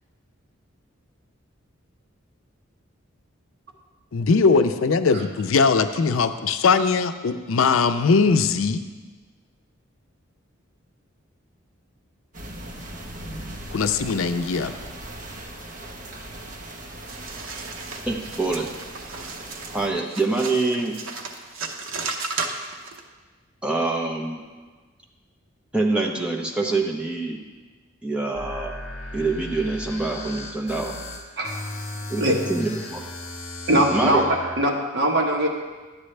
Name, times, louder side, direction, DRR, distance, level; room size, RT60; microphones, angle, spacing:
voice 1, 4.1-8.8 13.7-14.7, left 4 dB, 85° left, 9 dB, 0.5 m, -20 dB
sound 1, 12.3-19.9, right 1 dB, 40° right, 1.0 m, -39 dB
sound 2, 17.1-23.0, right 4 dB, 80° right, 0.8 m, -34 dB
voice 2, 18.1-18.7 19.7-21.0 23.6-24.4 25.7-27.4 28.0-28.7 29.1-31.0 32.1-32.2 32.5-33.0 33.9-34.3, right 3 dB, 5° right, -1 dB, 0.8 m, -25 dB
sound 3, 28.3-34.5, left 1 dB, 35° left, 1.1 m, -36 dB
voice 3, 33.7-35.5, right 1 dB, 55° right, -1 dB, 1.3 m, -21 dB
11.5 x 8.6 x 3.3 m, 1.3 s
head